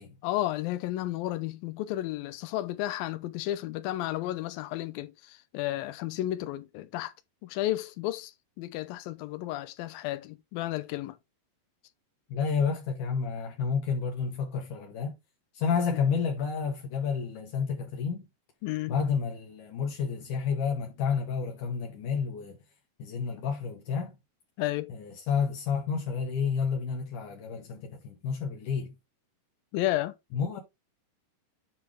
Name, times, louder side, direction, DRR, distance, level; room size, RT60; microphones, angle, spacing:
voice 1, 0.2-7.1 7.4-11.2 18.6-19.0 24.6-24.9 29.7-30.2, left 15 dB, 90° left, 2.6 m, -32 dB
voice 2, 12.3-15.2 15.5-18.2 18.9-22.6 23.0-24.2 24.9-28.9 30.3-30.6, left 6 dB, 70° left, 2.7 m, -30 dB
9.5 x 4.7 x 3.5 m
omnidirectional pair, 4.0 m